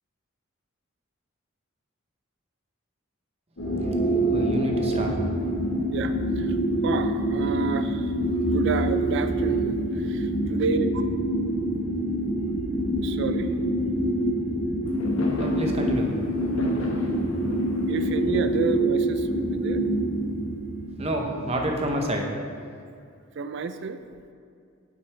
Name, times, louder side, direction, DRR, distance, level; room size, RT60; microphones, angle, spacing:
sound 1, 3.6-21.7, right 1 dB, 65° left, 1.8 m, -26 dB
voice 1, 4.3-5.1 15.4-16.1 16.4-16.5 21.0-22.3 22.6-22.7, right 1 dB, 30° right, 1 dB, 0.7 m, -28 dB
voice 2, 5.9-6.6 6.8-8.1 8.5-11.0 13.0-13.5 17.9-19.8 23.4-24.0, right 4 dB, 60° right, 10 dB, 0.4 m, -30 dB
Fireworks, 14.8-20.1, left 1 dB, 80° left, 0.9 m, -35 dB
8.2 x 5.3 x 3.3 m, 2.3 s
head